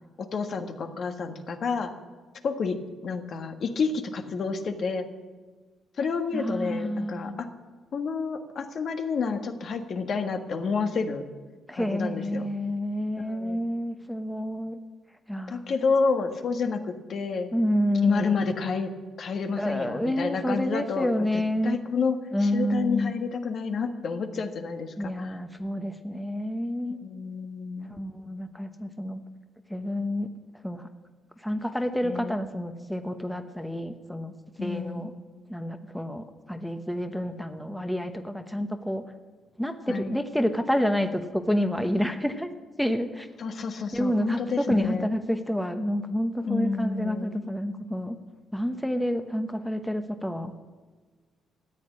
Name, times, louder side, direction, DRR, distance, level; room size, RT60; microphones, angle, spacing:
voice 1, 0.2-1.9 2.4-2.8 3.0-5.1 6.0-7.5 7.9-11.2 11.7-12.5 13.2-13.6 15.5-17.5 18.0-18.9 19.2-21.2 21.6-25.3 27.0-27.9 32.0-32.4 34.6-35.0 39.9-40.2 43.4-45.1 46.4-47.4, left 5 dB, 55° left, 6 dB, 1.4 m, -29 dB
voice 2, 6.3-7.4 11.7-14.8 15.3-15.7 17.5-18.4 19.6-21.8 22.3-23.1 25.0-27.0 27.9-29.2 29.7-30.3 30.6-30.9 31.4-34.3 34.6-35.1 35.5-39.0 39.6-42.5 42.8-43.3 43.9-48.2 48.5-50.6, equal, 5° left, 7 dB, 1.0 m, -29 dB
14.0 x 8.2 x 9.8 m, 1.4 s
cardioid pair, 90°, 0 cm